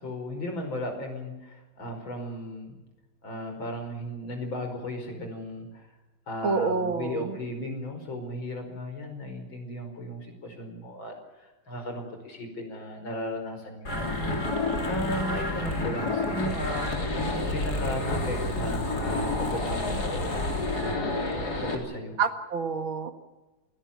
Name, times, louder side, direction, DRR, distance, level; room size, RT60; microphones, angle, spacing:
voice 1, 0.0-2.8 3.2-6.0 6.3-14.1 14.8-17.0 17.5-20.3 20.8-22.2, left 1 dB, 75° left, 4 dB, 5.9 m, -35 dB
voice 2, 6.4-7.4 22.2-23.1, right 5 dB, 80° right, 8 dB, 2.6 m, -27 dB
sound 1, 13.8-21.7, left 2 dB, 50° left, 3.9 m, -29 dB
28.0 x 17.0 x 7.2 m, 1.1 s
omnidirectional pair, 2.2 m